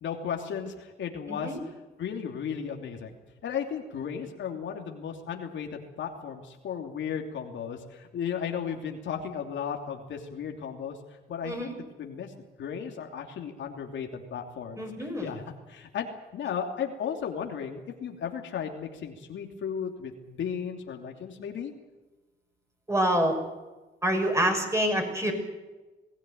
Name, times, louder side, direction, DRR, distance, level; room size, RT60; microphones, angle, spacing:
voice 1, 0.0-1.7 2.0-3.1 3.4-11.0 11.3-11.7 12.0-12.3 12.6-15.4 15.7-21.7, left 7 dB, 70° left, 3 dB, 2.9 m, -35 dB
voice 2, 11.4-11.8 14.8-15.3 22.9-23.4 24.0-25.3, equal, 15° right, 3 dB, 6.1 m, -26 dB
21.0 x 16.5 x 9.3 m, 1.2 s
cardioid pair, 90°, 20 cm